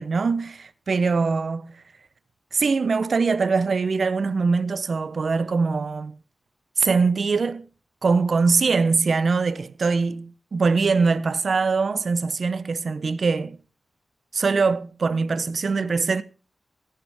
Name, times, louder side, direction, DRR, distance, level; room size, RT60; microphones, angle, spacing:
voice 1, 0.0-1.8 2.5-6.2 6.8-7.7 8.0-13.6 14.3-16.2, right 4 dB, 60° right, 0.6 m, -22 dB
15.5 x 10.5 x 3.5 m
wide cardioid pair, 75°, 0 cm